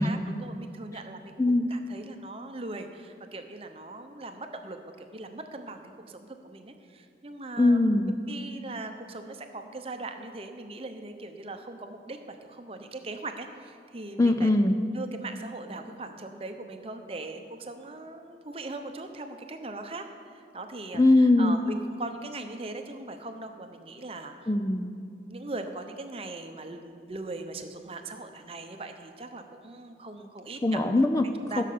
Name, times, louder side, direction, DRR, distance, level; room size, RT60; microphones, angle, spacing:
voice 1, 0.0-1.4 1.7-7.8 8.3-14.5 14.9-24.5 25.3-30.8 31.2-31.6, right 2 dB, 35° right, 6 dB, 0.8 m, -40 dB
voice 2, 1.4-1.7 7.6-8.1 14.2-14.8 20.9-21.6 24.5-24.9 30.6-31.3 31.6-31.7, left 2 dB, 20° left, 7 dB, 0.4 m, -21 dB
15.0 x 6.5 x 6.8 m, 2.4 s
head